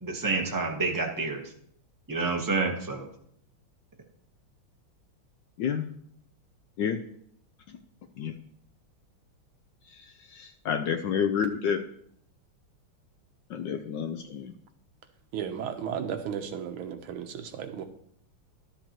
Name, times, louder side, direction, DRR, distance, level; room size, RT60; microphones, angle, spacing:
voice 1, 0.0-1.4 2.1-3.1, right 3 dB, 20° right, 1 dB, 0.6 m, -28 dB
voice 2, 10.4-11.8 13.5-14.5, left 7 dB, 75° left, 7 dB, 1.1 m, -29 dB
voice 3, 15.3-17.8, right 8 dB, 75° right, 7 dB, 1.6 m, -34 dB
12.0 x 8.3 x 3.0 m, 0.67 s
omnidirectional pair, 2.4 m